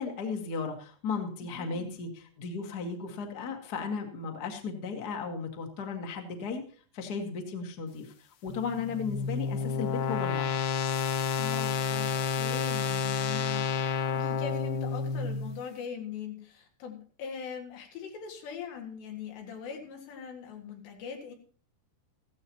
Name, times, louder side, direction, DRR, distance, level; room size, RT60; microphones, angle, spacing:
voice 1, 0.0-6.6 6.9-10.8, left 5 dB, 50° left, 3 dB, 1.1 m, -35 dB
voice 2, 1.5-2.0 8.7-8.9 11.3-21.3, left 7 dB, 90° left, 2 dB, 4.4 m, -41 dB
sound 1, 8.5-15.6, left 5 dB, 70° left, 2.1 m, -30 dB
15.5 x 14.5 x 3.0 m, 0.42 s
omnidirectional pair, 4.9 m